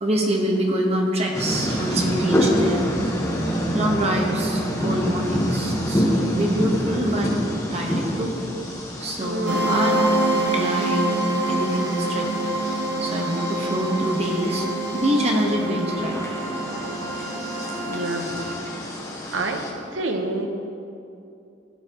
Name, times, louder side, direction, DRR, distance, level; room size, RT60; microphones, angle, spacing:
voice 1, 0.0-2.9 3.4-7.3 7.7-8.3 9.0-12.3 12.6-16.2 17.6-17.7, right 1 dB, 35° right, 0 dB, 1.2 m, -25 dB
sound 1, 1.3-19.7, equal, 15° left, 1.2 m, -28 dB
voice 2, 9.2-9.8 17.9-18.5 19.3-19.6 19.9-20.5, right 2 dB, 90° right, 4 dB, 1.1 m, -28 dB
sound 2, 9.5-18.6, right 1 dB, 65° right, 1.3 m, -26 dB
15.5 x 9.4 x 3.0 m, 2.6 s
head